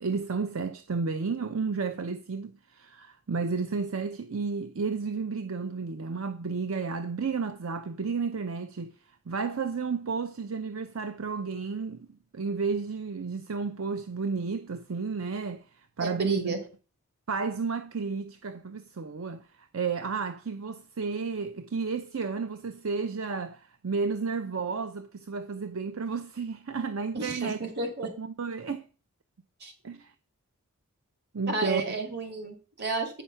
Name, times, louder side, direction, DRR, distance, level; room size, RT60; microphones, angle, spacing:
voice 1, 0.0-8.9 9.3-12.1 12.3-16.6 17.3-27.6 28.2-28.9 29.8-30.1 31.3-31.8, right 5 dB, 70° right, 0.6 m, -32 dB
voice 2, 16.0-16.6 27.1-28.1 29.6-29.7 31.5-33.2, right 3 dB, 50° right, 2.6 m, -32 dB
8.9 x 6.0 x 5.5 m
head